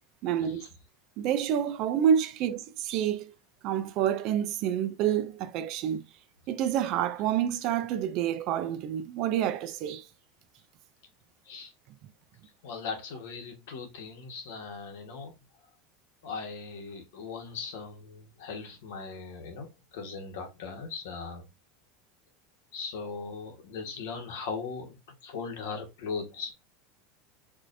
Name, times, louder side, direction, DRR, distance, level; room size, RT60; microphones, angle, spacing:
voice 1, 0.2-0.7 1.2-3.3 3.6-6.0 6.5-10.1, right 9 dB, 35° right, 0.3 m, -28 dB
voice 2, 12.6-15.3 16.2-21.5 22.7-25.0 25.2-26.5, left 5 dB, 70° left, 1.3 m, -39 dB
4.7 x 2.6 x 2.5 m
supercardioid pair, 180°, 0 cm